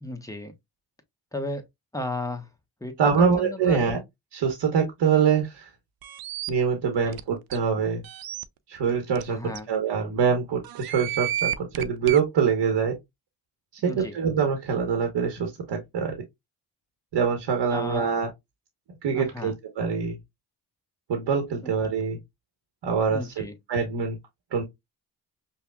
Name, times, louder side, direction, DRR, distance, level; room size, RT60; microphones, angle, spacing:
voice 1, 0.0-0.5 1.3-1.6 1.9-2.5 2.8-4.0 6.8-7.2 9.3-9.7 13.8-14.2 17.7-18.1 19.1-19.5 21.6-21.7 23.1-23.5, left 2 dB, 10° left, 0.9 m, -34 dB
voice 2, 3.0-4.0 4.3-5.7 6.5-8.0 8.7-13.0 13.7-16.1 17.1-18.3 19.0-20.2 21.1-22.2 22.8-23.3 23.7-24.2 24.5-24.6, right 6 dB, 75° right, 1.1 m, -24 dB
sound 1, 6.0-6.5 7.1-7.2 7.5-7.6 8.0-8.4 9.2-9.3 9.6-9.7 10.6-12.2, right 12 dB, 55° right, 0.5 m, -31 dB
5.5 x 2.3 x 2.2 m
cardioid pair, 65°, 44 cm